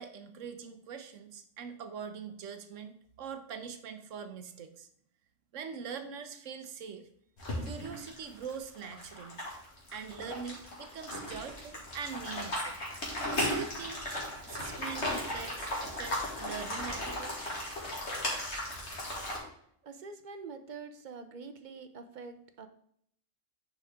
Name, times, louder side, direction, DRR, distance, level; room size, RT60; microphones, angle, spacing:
voice 1, 0.0-4.9 5.5-7.1 7.6-9.4 9.9-12.8 13.4-14.0 14.4-17.5, right 6 dB, 85° right, 8 dB, 1.2 m, -43 dB
sound 1, 7.4-19.4, left 1 dB, 65° left, 2.3 m, -36 dB
voice 2, 19.8-22.7, right 4 dB, 45° right, 9 dB, 0.7 m, -45 dB
10.0 x 4.5 x 3.6 m, 0.67 s
omnidirectional pair, 1.3 m